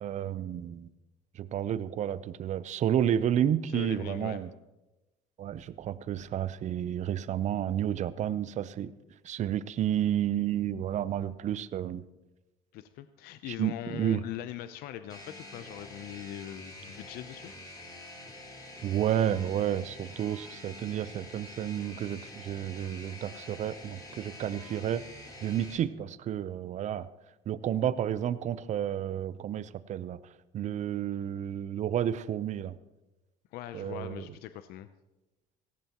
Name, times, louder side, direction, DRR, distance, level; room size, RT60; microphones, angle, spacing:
voice 1, 0.0-0.9 1.3-4.5 5.4-8.9 9.2-12.0 13.5-14.2 18.8-25.0 25.4-27.1 27.5-30.2 30.5-32.8 33.7-34.2, right 10 dB, 45° right, 16 dB, 0.7 m, -31 dB
voice 2, 3.7-4.4 12.7-17.5 33.5-34.9, left 12 dB, 70° left, 11 dB, 0.6 m, -41 dB
sound 1, 15.1-25.8, left 1 dB, 20° left, 4.2 m, -47 dB
18.0 x 15.5 x 3.0 m, 1.0 s
supercardioid pair, 95°, 17 cm